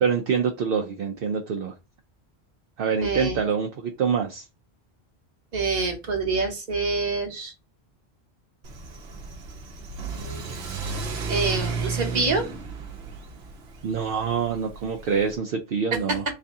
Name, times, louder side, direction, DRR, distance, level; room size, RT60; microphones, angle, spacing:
voice 1, 0.0-1.7 2.8-4.4 13.8-16.2, right 6 dB, 65° right, 4 dB, 0.7 m, -25 dB
voice 2, 3.0-3.4 5.5-7.5 10.1-10.6 11.3-12.5, right 3 dB, 45° right, 2 dB, 1.1 m, -26 dB
Car / Accelerating revving vroom, 8.6-15.4, right 4 dB, 90° right, 1.0 m, -33 dB
3.3 x 2.7 x 3.5 m, 0.27 s
omnidirectional pair, 1.0 m